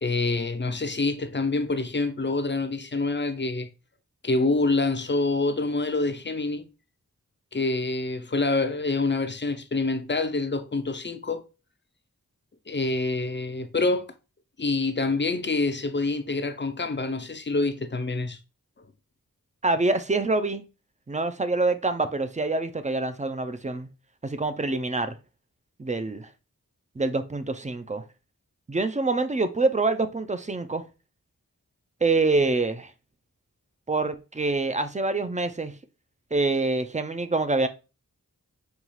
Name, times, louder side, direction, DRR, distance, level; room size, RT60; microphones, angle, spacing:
voice 1, 0.0-3.7 4.2-6.7 7.5-11.4 12.7-14.1 14.6-18.4, left 3 dB, 35° left, 0.5 m, -26 dB
voice 2, 19.6-20.7 21.1-23.9 24.2-25.2 25.8-26.3 27.0-28.0 28.7-30.8 32.0-32.9 33.9-35.7 36.3-37.7, right 3 dB, 20° right, 0.4 m, -26 dB
5.4 x 2.3 x 3.1 m
wide cardioid pair, 45°, 34 cm